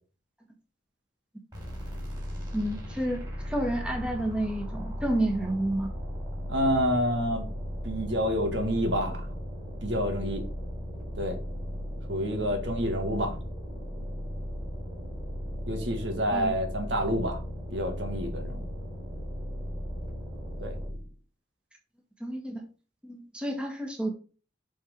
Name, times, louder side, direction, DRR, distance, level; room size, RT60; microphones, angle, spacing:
sound 1, 1.5-21.1, equal, 20° right, 3.5 m, -36 dB
voice 1, 2.5-5.9 16.3-16.5 22.2-22.6 23.0-24.1, right 1 dB, 5° right, 1 dB, 1.5 m, -30 dB
voice 2, 6.5-7.5 7.8-9.3 9.8-10.4 11.2-11.4 12.1-13.4 15.7-17.4 17.7-18.7 20.6-20.7, equal, 70° right, 4 dB, 2.1 m, -28 dB
7.2 x 4.6 x 5.3 m, 0.36 s
head